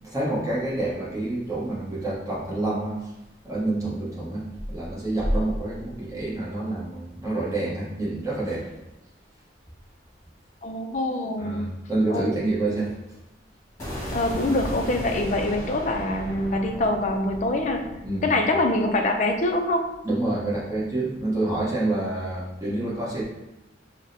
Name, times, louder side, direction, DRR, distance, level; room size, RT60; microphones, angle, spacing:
voice 1, 0.0-3.1 3.4-8.7 11.4-12.9 18.0-18.3 20.0-23.2, right 2 dB, 15° right, -7 dB, 0.9 m, -27 dB
voice 2, 10.6-11.7 12.1-12.3 14.1-17.9 18.2-19.8, left 2 dB, 40° left, 4 dB, 0.3 m, -24 dB
sound 1, 13.8-19.8, equal, 15° left, 1.5 m, -36 dB
4.7 x 2.1 x 2.6 m, 0.94 s
head